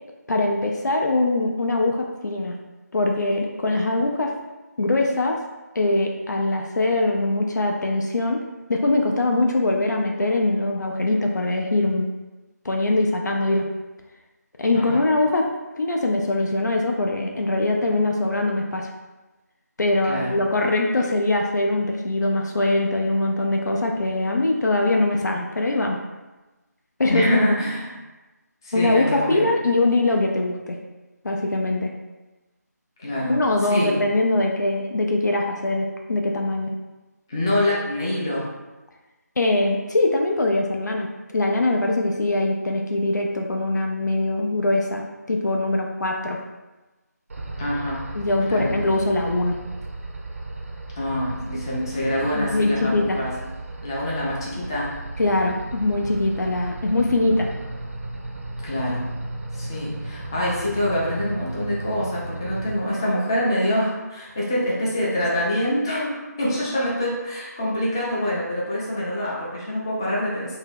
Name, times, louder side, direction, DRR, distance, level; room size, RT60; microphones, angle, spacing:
voice 1, 0.3-2.6 2.9-4.3 4.8-5.4 5.7-8.4 8.7-12.1 12.6-13.7 14.6-15.5 15.7-18.9 19.8-26.0 27.0-27.4 28.7-30.8 31.2-31.9 33.3-36.7 39.4-45.0 45.3-46.4 48.1-49.6 52.3-53.2 55.2-57.5, left 2 dB, 80° left, 1 dB, 0.4 m, -22 dB
voice 2, 20.0-20.3 27.1-27.9 28.6-29.5 33.0-34.0 37.3-38.5 47.6-48.0 48.4-48.7 51.0-53.3 53.8-54.9 58.6-59.1 59.5-70.6, left 1 dB, 15° left, -6 dB, 0.4 m, -25 dB
sound 1, 47.3-62.8, right 2 dB, 50° right, 0.5 m, -35 dB
2.6 x 2.2 x 3.4 m, 1.1 s
figure-of-eight pair, 160°, 9 cm